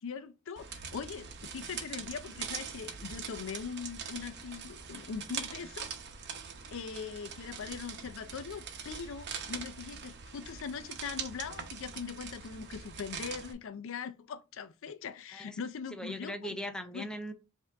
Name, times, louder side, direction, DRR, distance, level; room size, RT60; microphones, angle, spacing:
voice 1, 0.0-5.9 6.7-16.6 16.9-17.1, left 6 dB, 65° left, 0.4 m, -41 dB
sound 1, 0.6-13.5, right 6 dB, 55° right, 0.8 m, -43 dB
voice 2, 15.9-17.3, equal, 5° left, 0.5 m, -39 dB
5.3 x 2.5 x 3.4 m
head